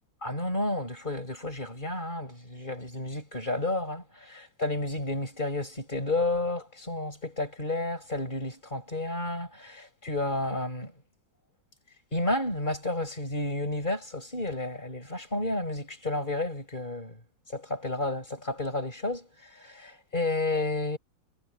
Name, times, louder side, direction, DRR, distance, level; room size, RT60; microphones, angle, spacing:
voice 1, 0.2-10.9 12.1-17.2 17.5-21.0, left 2 dB, 25° left, 6.3 m, -31 dB
omnidirectional pair, 2.2 m